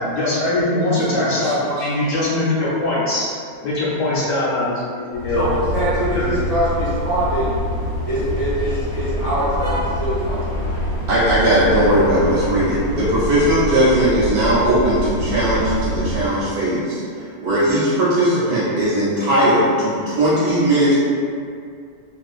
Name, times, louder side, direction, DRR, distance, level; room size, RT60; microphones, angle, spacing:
voice 1, 0.0-3.3 3.6-5.5 6.1-6.3 13.0-13.1, left 2 dB, 65° left, -8 dB, 1.0 m, -21 dB
voice 2, 0.9-1.9 11.1-21.0, right 1 dB, 90° right, -9 dB, 1.2 m, -18 dB
sound 1, 5.1-16.3, left 1 dB, 85° left, 1.2 m, -25 dB
voice 3, 5.3-7.6 8.1-10.4, right 1 dB, 50° right, -13 dB, 0.4 m, -23 dB
2.5 x 2.4 x 2.3 m, 2.3 s
omnidirectional pair, 1.6 m